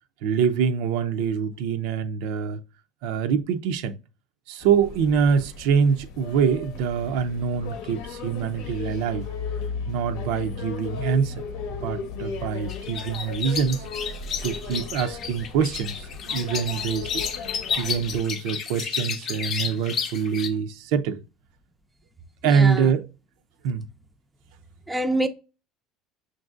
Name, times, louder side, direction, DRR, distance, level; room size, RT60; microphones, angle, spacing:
voice 1, 0.2-2.6 3.0-3.9 4.5-9.3 9.9-11.3 11.8-13.9 14.4-17.2 17.8-21.2 22.4-23.1 23.6-23.9, right 7 dB, 75° right, 0.4 m, -24 dB
sound 1, 4.6-18.2, left 5 dB, 80° left, 0.8 m, -36 dB
sound 2, 12.7-20.5, left 7 dB, 45° left, 0.6 m, -31 dB
voice 2, 22.4-22.9 24.9-25.3, right 1 dB, 5° right, 0.4 m, -25 dB
5.9 x 2.6 x 2.4 m
supercardioid pair, 125°, 0 cm